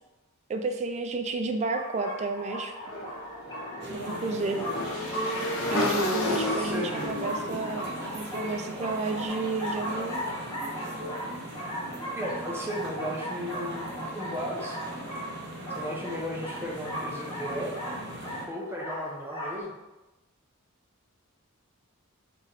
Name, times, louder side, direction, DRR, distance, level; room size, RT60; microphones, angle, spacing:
voice 1, 0.5-2.7 3.9-4.7 5.7-10.2, right 3 dB, 30° right, 5 dB, 0.3 m, -31 dB
sound 1, 1.7-19.6, equal, 20° left, 1.2 m, -38 dB
Motorcycle / Engine, 2.8-8.9, left 1 dB, 65° left, 0.8 m, -32 dB
sound 2, 3.8-18.5, right 1 dB, 55° right, 0.9 m, -40 dB
voice 2, 6.2-7.0 12.1-14.9 15.8-17.7 18.5-19.7, equal, 10° right, -2 dB, 0.7 m, -35 dB
3.8 x 3.1 x 4.0 m, 1.1 s
head